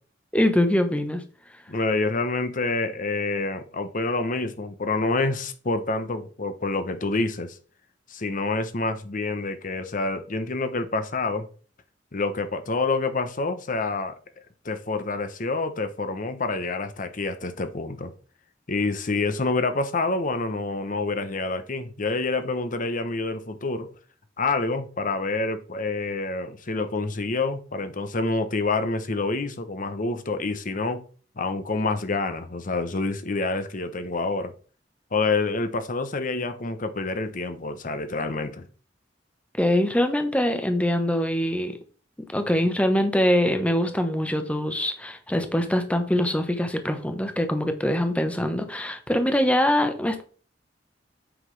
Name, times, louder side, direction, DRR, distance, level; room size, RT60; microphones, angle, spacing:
voice 1, 0.3-1.2 39.6-41.8 42.3-50.2, left 1 dB, 5° left, 0.9 m, -23 dB
voice 2, 1.7-7.6 8.1-11.5 12.1-14.1 14.6-18.1 18.7-23.9 24.4-31.0 31.4-34.5 35.1-38.6, left 3 dB, 45° left, 0.9 m, -27 dB
8.0 x 5.8 x 3.3 m
head